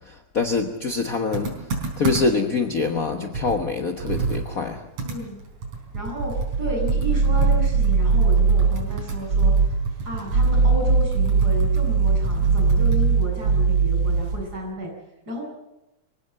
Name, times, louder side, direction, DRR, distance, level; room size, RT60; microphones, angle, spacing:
voice 1, 0.3-1.5 2.0-4.8, left 4 dB, 60° left, 6 dB, 0.9 m, -24 dB
Computer keyboard, 1.3-2.5 2.9-3.0 3.3-6.6 6.9-13.4, right 4 dB, 70° right, 5.8 m, -31 dB
voice 2, 5.0-5.3 5.9-14.9 15.3-15.4, equal, 30° right, -1 dB, 8.6 m, -32 dB
sound 1, 6.3-8.9 9.3-9.8 10.2-14.5, right 4 dB, 50° right, 2.3 m, -20 dB
25.5 x 17.0 x 7.8 m, 0.92 s
omnidirectional pair, 3.5 m